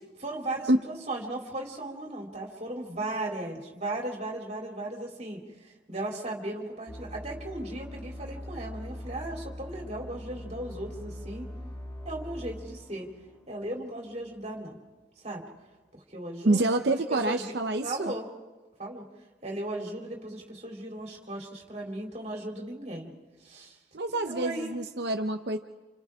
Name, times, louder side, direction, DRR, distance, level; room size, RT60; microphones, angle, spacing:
voice 1, 0.2-11.5 12.1-13.1 13.5-14.8 15.2-15.4 15.9-16.8 17.1-17.5 17.8-18.3 18.8-19.0 19.4-23.1 23.4-23.8 24.3-24.8, right 1 dB, 35° right, -1 dB, 3.8 m, -36 dB
sound 1, 6.9-14.4, equal, 20° left, 2.0 m, -42 dB
voice 2, 16.4-18.1 23.9-25.6, right 2 dB, 65° right, 5 dB, 0.9 m, -27 dB
29.5 x 28.5 x 3.7 m, 1.2 s
head